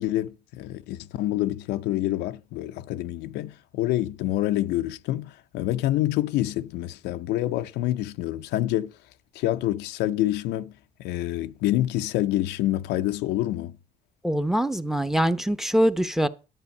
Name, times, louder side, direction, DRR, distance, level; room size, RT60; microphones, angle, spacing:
voice 1, 0.0-8.9 9.3-10.7 11.0-13.8, left 14 dB, 85° left, 0.6 m, -27 dB
voice 2, 14.2-16.3, equal, ahead, 0.7 m, -23 dB
11.0 x 8.0 x 5.4 m
cardioid pair, 110°, 17 cm